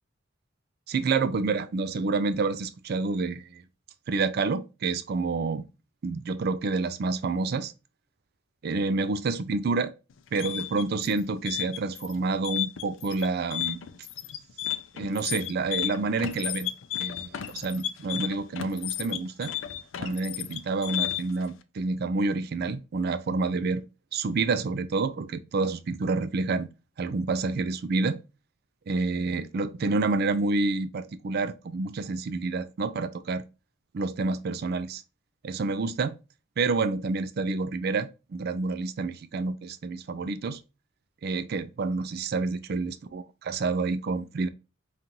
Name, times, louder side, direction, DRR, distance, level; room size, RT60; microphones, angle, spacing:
voice 1, 0.9-3.6 4.1-5.6 6.0-7.7 8.6-9.9 10.3-13.8 14.9-16.7 17.0-19.5 20.0-23.8 24.1-26.7 27.0-28.2 28.9-33.4 33.9-35.0 35.4-36.2 36.6-40.6 41.2-44.5, right 3 dB, 50° right, 0.4 m, -28 dB
sound 1, 10.1-21.4, left 12 dB, 70° left, 0.4 m, -33 dB
5.2 x 2.4 x 2.8 m
head